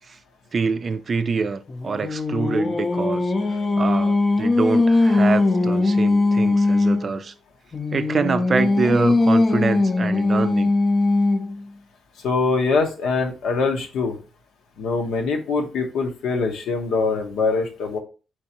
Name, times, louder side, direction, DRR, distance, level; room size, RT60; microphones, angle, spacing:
voice 1, 0.5-7.3 7.9-10.7, right 5 dB, 40° right, 0.4 m, -25 dB
Singing, 1.7-7.1 7.7-11.6, left 2 dB, 30° left, 0.6 m, -20 dB
voice 2, 12.2-14.2 14.8-18.0, left 4 dB, 80° left, 0.9 m, -23 dB
4.6 x 3.4 x 2.8 m
cardioid pair, 90°, 0 cm